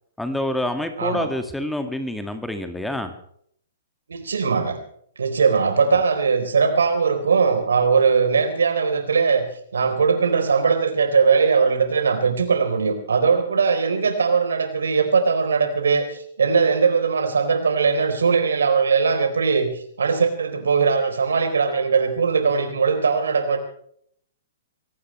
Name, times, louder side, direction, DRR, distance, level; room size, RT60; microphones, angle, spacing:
voice 1, 0.2-3.1, left 1 dB, 5° left, 7 dB, 2.0 m, -27 dB
voice 2, 1.0-1.3 4.1-4.8 5.2-9.5 9.7-23.6, right 5 dB, 75° right, 8 dB, 3.8 m, -20 dB
24.5 x 17.5 x 3.2 m, 0.64 s
figure-of-eight pair, 115°, 0 cm